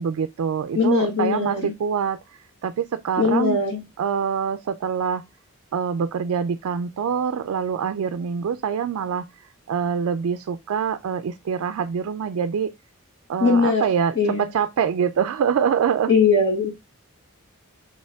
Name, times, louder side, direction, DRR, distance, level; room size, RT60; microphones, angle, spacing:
voice 1, 0.0-2.2 2.6-3.6 4.0-5.2 5.7-12.7 13.3-16.1, right 7 dB, 75° right, 0.3 m, -25 dB
voice 2, 0.7-1.7 3.2-3.8 13.4-13.8 14.1-14.4 16.1-16.7, left 4 dB, 50° left, 1.5 m, -20 dB
4.3 x 3.3 x 3.4 m
head